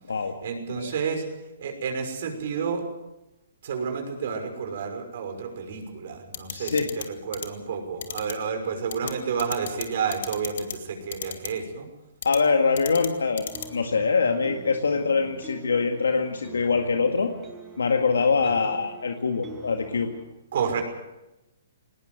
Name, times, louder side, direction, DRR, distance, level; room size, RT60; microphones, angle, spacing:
voice 1, 0.4-1.2 1.6-2.9 3.6-11.9 18.4-18.8 20.5-20.8, right 6 dB, 60° right, 5 dB, 5.9 m, -30 dB
sound 1, 6.3-7.0 7.3-7.5 8.0-8.3 8.9-9.1 9.4-9.8 10.1-10.7 11.1-11.5 12.2-12.4 12.8-13.1 13.4-13.7, left 9 dB, 65° left, 2.5 m, -32 dB
voice 2, 6.5-6.9 12.2-17.3 17.8-20.1, left 4 dB, 85° left, 5 dB, 1.9 m, -24 dB
sound 2, 13.5-20.3, right 2 dB, 20° right, 5.5 m, -45 dB
19.5 x 19.5 x 7.9 m, 0.97 s
hypercardioid pair, 140°, 0 cm